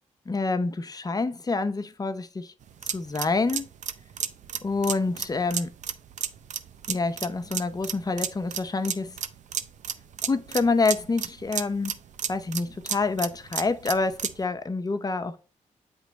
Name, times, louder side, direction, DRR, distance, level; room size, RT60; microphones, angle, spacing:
voice 1, 0.3-2.5 2.8-3.7 4.6-5.7 6.9-9.2 10.2-12.0 12.3-15.4, left 3 dB, 30° left, 0.7 m, -27 dB
sound 1, 2.6-14.4, right 8 dB, 65° right, 0.5 m, -33 dB
8.0 x 3.0 x 4.0 m
cardioid pair, 60°, 13 cm